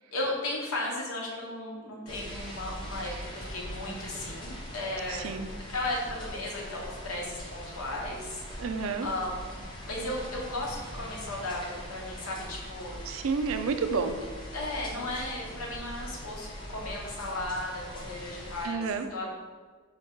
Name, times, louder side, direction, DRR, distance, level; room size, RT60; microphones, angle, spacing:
voice 1, 0.1-8.7 9.0-13.0 14.5-18.8 19.1-19.3, left 1 dB, 90° left, -2 dB, 1.0 m, -35 dB
sound 1, 2.1-18.7, equal, 20° left, 0.6 m, -42 dB
voice 2, 5.1-5.5 8.6-9.1 13.0-14.2 18.6-19.1, right 5 dB, 75° right, 8 dB, 0.3 m, -30 dB
4.6 x 2.8 x 3.6 m, 1.5 s
head